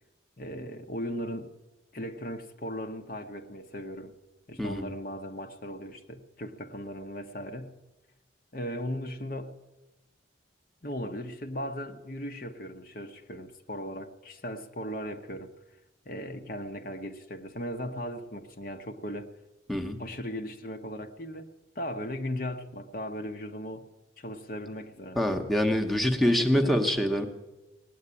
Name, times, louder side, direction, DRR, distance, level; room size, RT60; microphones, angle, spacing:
voice 1, 0.4-1.5 1.9-4.2 4.5-7.8 8.5-9.6 10.8-15.5 16.0-19.3 20.0-23.9 24.2-25.5 26.2-26.7, equal, 45° left, 1.0 m, -37 dB
voice 2, 4.6-4.9 19.7-20.0 25.2-27.3, equal, ahead, 1.0 m, -25 dB
18.5 x 8.0 x 9.7 m
head